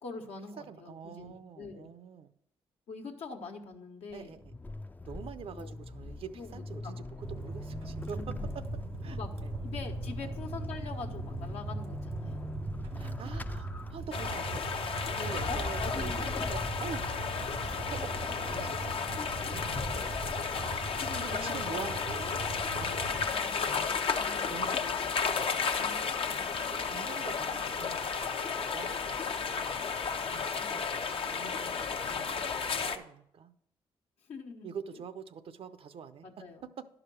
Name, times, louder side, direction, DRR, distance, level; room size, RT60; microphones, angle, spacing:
voice 1, 0.0-1.9 2.9-4.4 5.5-5.7 6.3-6.9 8.1-8.6 9.1-9.3 9.6-12.6 15.2-16.2 19.9-20.3 20.9-22.0 23.1-25.0 25.7-26.5 30.5-30.8 34.2-35.0 36.2-36.6, left 4 dB, 80° left, 2 dB, 1.3 m, -44 dB
voice 2, 0.6-2.3 4.1-4.5 5.0-8.3 9.0-9.5 10.2-10.4 12.9-17.5 17.9-19.2 19.5-20.0 20.5-20.8 21.2-22.4 22.7-23.5 24.5-25.0 25.8-26.0 26.7-29.8 30.3-33.5 34.6-36.3, right 7 dB, 65° right, 12 dB, 0.6 m, -46 dB
Vehicle / Accelerating revving vroom / Squeak, 4.1-21.3, left 2 dB, 15° left, 0.4 m, -42 dB
sound 1, 7.2-23.3, right 3 dB, 85° right, 1.4 m, -40 dB
sound 2, 14.1-33.0, left 5 dB, 60° left, 0.8 m, -33 dB
11.0 x 5.0 x 6.2 m, 0.77 s
cardioid pair, 65°, 10 cm